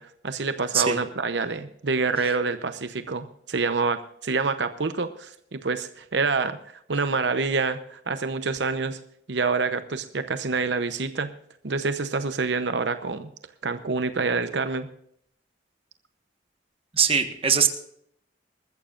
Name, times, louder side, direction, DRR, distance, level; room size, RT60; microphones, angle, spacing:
voice 1, 0.0-6.6 6.9-9.0 9.3-11.3 11.6-13.3 13.6-14.9, right 4 dB, 75° right, 10 dB, 0.8 m, -27 dB
voice 2, 16.9-17.7, right 7 dB, 30° right, 7 dB, 1.4 m, -21 dB
21.5 x 14.0 x 2.5 m, 0.69 s
head